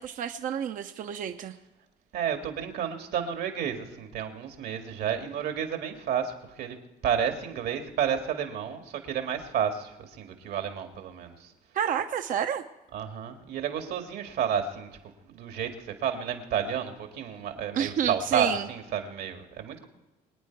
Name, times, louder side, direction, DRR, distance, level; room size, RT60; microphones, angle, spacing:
voice 1, 0.0-1.5 11.7-12.6 17.7-18.7, right 9 dB, 50° right, 7 dB, 0.7 m, -29 dB
voice 2, 2.1-6.8 7.0-11.5 12.9-19.9, right 8 dB, 70° right, 5 dB, 2.0 m, -31 dB
24.0 x 9.4 x 4.6 m, 1.1 s
cardioid pair, 110°, 17 cm